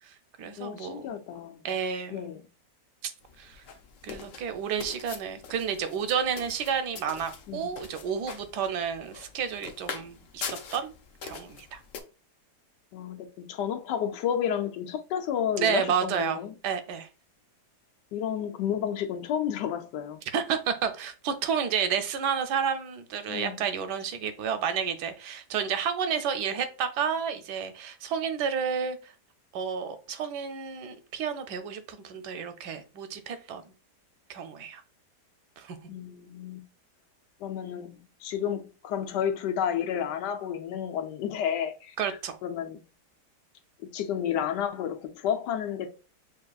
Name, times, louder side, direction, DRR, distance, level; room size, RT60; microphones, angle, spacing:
voice 1, 0.0-1.1 1.6-2.3 3.0-3.1 3.4-3.6 4.0-10.9 11.2-11.8 15.6-17.1 20.3-29.1 29.5-33.7 34.3-34.8 35.6-35.8 42.0-42.4, right 7 dB, 80° right, 1.2 m, -31 dB
voice 2, 0.6-1.7 2.1-2.4 7.5-7.6 12.9-16.5 18.1-20.2 23.3-23.6 35.9-36.6 37.4-42.0 42.4-42.8 43.9-45.9, left 9 dB, 80° left, 1.3 m, -31 dB
sound 1, 3.2-12.0, left 6 dB, 60° left, 0.9 m, -43 dB
6.6 x 2.7 x 2.3 m
omnidirectional pair, 1.8 m